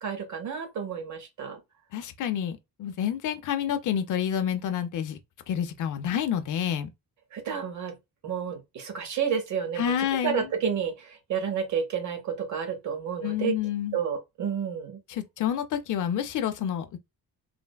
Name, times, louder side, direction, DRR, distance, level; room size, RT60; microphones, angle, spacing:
voice 1, 0.0-1.6 7.3-7.9 8.2-9.9 10.2-13.5 13.9-15.0, right 7 dB, 45° right, 0.8 m, -30 dB
voice 2, 1.9-5.2 5.5-6.9 9.8-10.5 13.2-14.0 15.1-17.0, left 9 dB, 50° left, 0.4 m, -29 dB
3.2 x 2.0 x 2.2 m
cardioid pair, 175°, 40 cm